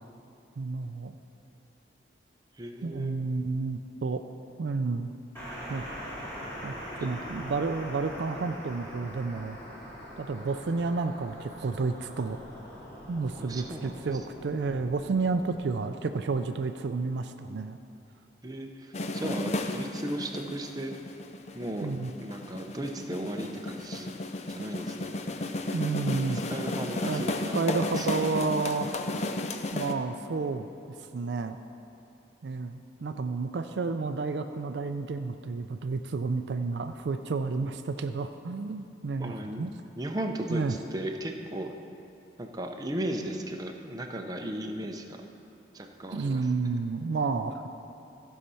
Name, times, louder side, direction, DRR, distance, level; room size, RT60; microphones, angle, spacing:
voice 1, 0.6-1.1 2.8-4.2 4.6-5.1 5.7-5.8 6.6-6.7 7.0-9.6 10.2-12.4 13.1-17.8 21.8-22.1 25.7-26.4 27.1-27.2 27.5-29.0 29.7-30.7 31.1-31.6 32.4-39.7 40.5-40.7 46.1-47.7, right 4 dB, 65° right, 8 dB, 0.4 m, -31 dB
voice 2, 2.6-3.1 7.0-7.1 13.4-14.1 18.4-20.9 21.5-21.9 22.2-24.1 24.5-25.1 26.5-28.1 39.2-39.6 40.0-41.7 42.4-45.2 45.7-46.5, right 1 dB, 20° right, 2 dB, 0.6 m, -36 dB
sound 1, 5.3-15.8, equal, 15° left, 2.2 m, -43 dB
sound 2, 18.9-29.9, left 2 dB, 35° left, 0.4 m, -33 dB
15.0 x 5.6 x 5.5 m, 2.8 s
head